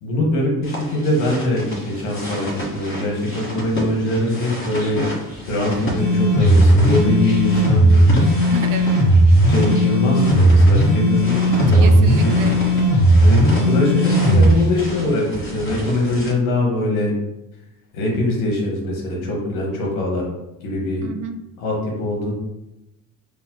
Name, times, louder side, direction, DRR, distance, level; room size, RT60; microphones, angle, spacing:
voice 1, 0.0-5.0 5.5-8.0 8.4-8.5 9.4-12.6 13.2-17.1 17.9-20.2 20.6-21.1 21.6-22.3, left 1 dB, 90° left, -1 dB, 1.1 m, -22 dB
sound 1, 0.6-16.3, equal, 30° left, 1.3 m, -31 dB
sound 2, 6.0-14.5, right 1 dB, 50° left, 1.4 m, -15 dB
voice 2, 8.5-9.0 11.7-12.6 21.0-21.4, right 6 dB, 50° right, 9 dB, 0.5 m, -30 dB
4.6 x 2.5 x 2.2 m, 0.91 s
hypercardioid pair, 65°, 43 cm